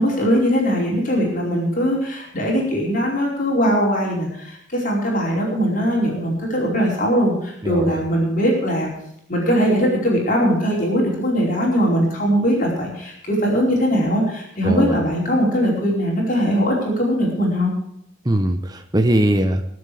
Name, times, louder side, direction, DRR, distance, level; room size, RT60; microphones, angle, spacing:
voice 1, 0.0-8.9 9.3-17.7, equal, 45° left, -2 dB, 4.8 m, -20 dB
voice 2, 7.6-8.0 14.6-15.0 18.2-19.6, right 1 dB, 20° right, 6 dB, 1.0 m, -20 dB
22.0 x 7.9 x 5.0 m, 0.76 s
head